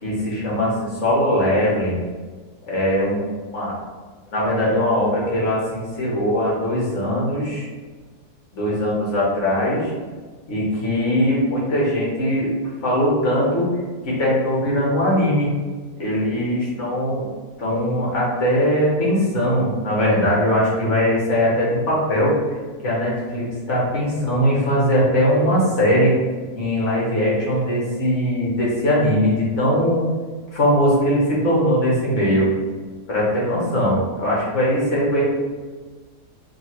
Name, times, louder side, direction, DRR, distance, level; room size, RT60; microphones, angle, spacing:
voice 1, 0.0-2.0 2.7-3.2 3.5-3.7 4.3-7.7 8.5-9.9 10.5-12.5 12.8-13.7 14.0-15.5 16.0-17.3 17.6-22.3 22.8-26.1 26.5-30.1 30.5-32.5 33.1-35.2, equal, 55° left, -5 dB, 1.4 m, -20 dB
3.8 x 2.4 x 4.3 m, 1.4 s
omnidirectional pair, 1.6 m